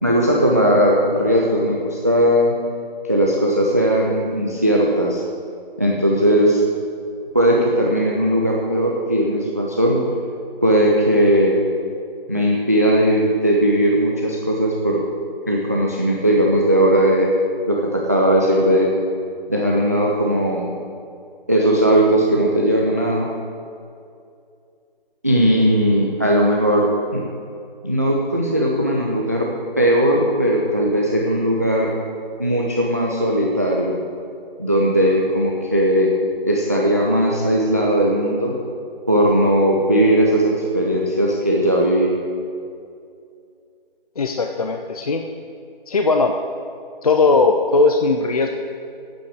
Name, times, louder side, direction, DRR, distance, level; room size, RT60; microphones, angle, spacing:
voice 1, 0.0-2.5 3.0-5.2 5.8-6.6 7.3-10.0 10.6-11.6 12.3-15.0 15.5-17.3 17.7-18.9 19.5-20.7 21.5-23.3 25.2-27.2 27.8-29.5 29.8-32.0 32.4-34.0 34.6-36.1 36.4-38.6 39.1-42.1, equal, 15° right, -2 dB, 0.4 m, -18 dB
voice 2, 44.2-45.2 45.9-46.3 47.0-48.6, left 3 dB, 40° left, 4 dB, 0.5 m, -18 dB
8.7 x 7.8 x 8.0 m, 2.4 s
figure-of-eight pair, 150°, 30 cm